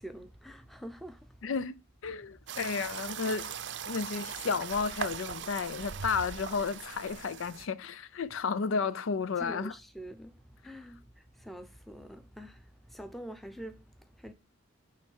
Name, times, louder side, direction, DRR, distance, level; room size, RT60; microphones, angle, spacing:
voice 1, 0.0-1.6 2.5-2.6 9.4-14.3, right 1 dB, ahead, 0.6 m, -46 dB
voice 2, 1.4-3.5 3.9-9.7, left 5 dB, 80° left, 0.5 m, -32 dB
sound 1, 2.5-7.7, right 7 dB, 60° right, 0.5 m, -40 dB
9.2 x 3.3 x 5.4 m
head